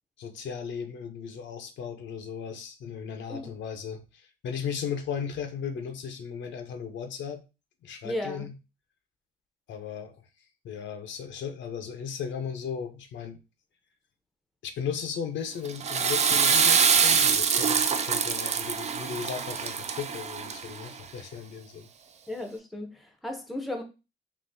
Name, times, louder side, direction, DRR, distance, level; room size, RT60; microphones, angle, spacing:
voice 1, 0.2-7.4 7.8-8.5 9.7-10.2 10.6-13.4 14.6-21.9, left 7 dB, 70° left, 0.6 m, -36 dB
voice 2, 8.0-8.4 22.3-23.8, left 1 dB, ahead, 0.6 m, -35 dB
Water / Toilet flush, 15.6-20.9, right 6 dB, 35° right, 0.4 m, -24 dB
3.6 x 2.5 x 2.6 m
cardioid pair, 90°, 20 cm